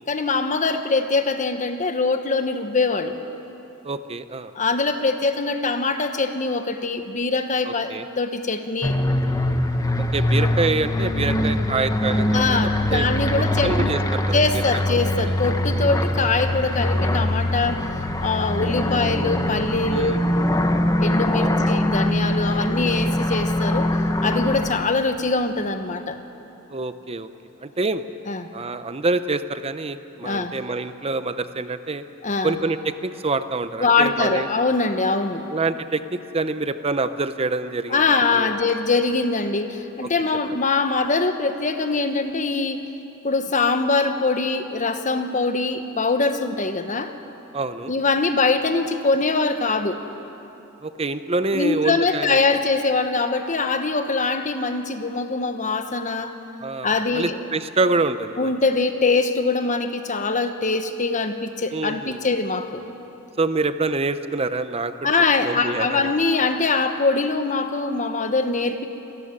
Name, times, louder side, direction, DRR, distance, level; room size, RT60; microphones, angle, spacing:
voice 1, 0.1-3.2 4.5-9.0 12.3-13.9 14.3-17.9 18.2-20.2 21.0-23.9 24.2-26.2 28.3-28.5 30.2-30.5 32.2-32.6 33.8-35.5 37.9-42.9 43.2-47.1 47.9-50.0 51.5-56.3 56.8-57.4 58.4-62.8 65.0-68.9, left 3 dB, 35° left, 8 dB, 1.1 m, -23 dB
voice 2, 3.8-4.5 7.6-8.1 10.0-13.0 13.6-14.6 15.2-15.3 19.9-20.2 21.4-21.5 26.7-27.3 27.6-28.0 28.5-32.0 32.4-34.5 35.5-38.0 38.3-38.5 47.5-47.9 50.8-52.6 56.6-58.5 61.7-62.3 63.4-65.1 65.4-66.1, right 3 dB, 25° right, 11 dB, 0.7 m, -26 dB
sound 1, 8.8-24.8, left 1 dB, 15° left, 0.9 m, -22 dB
27.0 x 14.0 x 9.9 m, 2.9 s
head